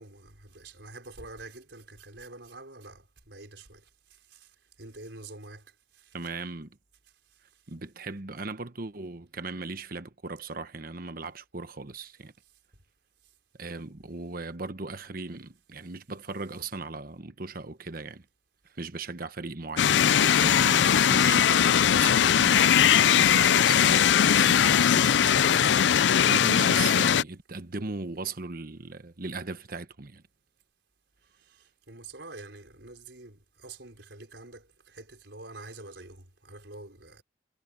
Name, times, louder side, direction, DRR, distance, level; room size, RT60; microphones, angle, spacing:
voice 1, 0.0-4.5 4.8-6.3 31.3-37.2, right 2 dB, 70° right, 5.3 m, -47 dB
voice 2, 6.1-6.7 7.7-12.3 13.6-18.2 18.8-30.2, right 3 dB, 50° right, 1.1 m, -38 dB
sound 1, 19.8-27.2, left 9 dB, 70° left, 0.4 m, -20 dB
head